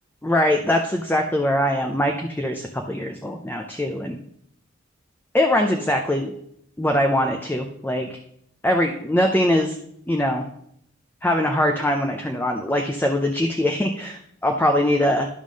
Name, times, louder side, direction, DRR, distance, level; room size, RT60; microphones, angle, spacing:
voice 1, 0.2-4.2 5.3-6.3 6.8-8.2 8.6-9.7 10.1-10.4 11.2-15.3, left 1 dB, 10° left, 3 dB, 0.5 m, -22 dB
10.5 x 3.6 x 6.3 m, 0.72 s
head